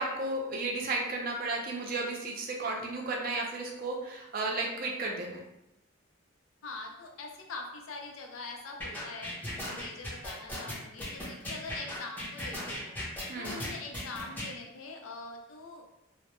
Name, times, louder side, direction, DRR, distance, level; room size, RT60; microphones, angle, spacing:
voice 1, 0.0-5.4 13.3-13.7, right 2 dB, 45° right, 0 dB, 0.4 m, -33 dB
voice 2, 6.6-12.9 13.4-16.0, left 3 dB, 90° left, 1 dB, 0.4 m, -43 dB
sound 1, 8.8-14.5, left 1 dB, 10° left, 0.5 m, -37 dB
2.1 x 2.1 x 2.9 m, 0.89 s
head